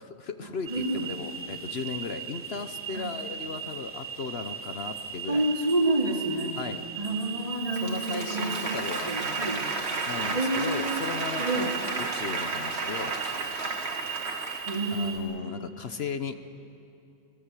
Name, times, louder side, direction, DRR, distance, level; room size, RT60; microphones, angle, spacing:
voice 1, 0.0-5.4 6.6-6.8 7.7-9.1 10.1-13.1 14.9-16.4, left 5 dB, 60° left, 9 dB, 1.1 m, -36 dB
sound 1, 0.7-15.2, right 7 dB, 10° right, 2.7 m, -38 dB
voice 2, 0.7-1.1 2.9-3.1 5.3-6.6 7.0-8.8 9.1-9.6 10.3-11.0 11.4-11.7 14.7-15.6, right 2 dB, 30° right, 0 dB, 2.7 m, -29 dB
Applause, 7.7-15.1, right 3 dB, 60° right, 1.9 m, -33 dB
27.0 x 18.0 x 8.3 m, 2.6 s
omnidirectional pair, 1.2 m